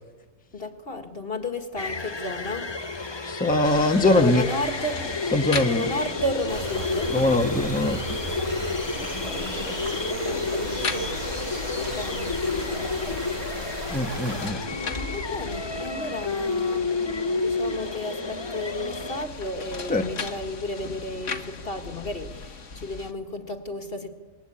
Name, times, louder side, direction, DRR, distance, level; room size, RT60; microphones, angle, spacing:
voice 1, 0.5-2.8 4.1-5.1 5.6-7.2 9.0-11.5 11.8-13.8 14.6-16.9 17.3-24.1, left 2 dB, 50° left, 7 dB, 2.0 m, -33 dB
sound 1, 1.8-19.2, left 3 dB, 25° left, 0.9 m, -31 dB
voice 2, 3.2-4.4 5.3-5.8 7.1-8.0 13.9-14.6 19.9-20.1, left 2 dB, 5° left, 4 dB, 1.3 m, -22 dB
sound 2, 3.6-23.1, left 4 dB, 75° left, 1.9 m, -38 dB
sound 3, 6.5-14.5, right 2 dB, 80° right, 3.9 m, -36 dB
26.5 x 22.0 x 8.7 m, 1.4 s
omnidirectional pair, 1.3 m